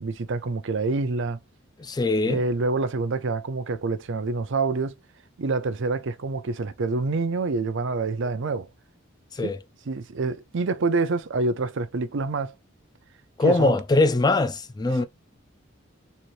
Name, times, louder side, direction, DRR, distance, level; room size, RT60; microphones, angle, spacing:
voice 1, 0.0-1.4 2.2-4.9 5.4-8.7 9.4-9.5 9.9-12.5 13.4-13.8, right 3 dB, 65° right, 0.6 m, -27 dB
voice 2, 1.8-2.4 9.3-9.6 13.4-15.0, left 2 dB, 20° left, 0.4 m, -22 dB
4.1 x 2.6 x 3.1 m
head